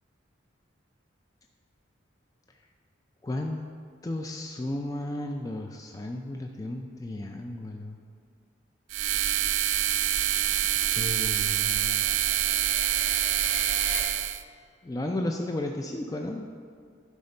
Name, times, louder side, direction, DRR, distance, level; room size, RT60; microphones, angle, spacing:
voice 1, 3.2-3.6 4.0-8.0 10.9-12.1 14.8-16.5, left 1 dB, 20° left, 2 dB, 0.3 m, -33 dB
sound 1, 8.9-14.4, right 12 dB, 80° right, 0.3 m, -26 dB
sound 2, 9.3-14.0, left 3 dB, 40° left, 2.4 m, -43 dB
11.5 x 4.3 x 5.3 m, 2.1 s
head